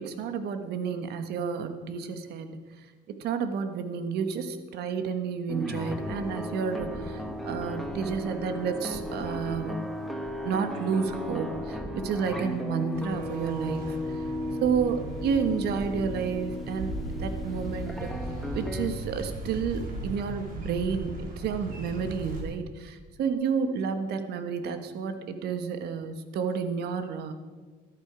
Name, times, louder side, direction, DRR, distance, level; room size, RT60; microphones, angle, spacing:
voice 1, 0.0-2.5 3.1-9.8 10.4-14.0 14.6-18.1 18.5-27.3, right 6 dB, 75° right, 8 dB, 1.3 m, -30 dB
sound 1, 5.5-18.9, left 1 dB, ahead, 1.5 m, -35 dB
sound 2, 12.9-22.4, right 1 dB, 55° right, 3.4 m, -38 dB
13.5 x 11.5 x 5.0 m, 1.4 s
cardioid pair, 110°, 17 cm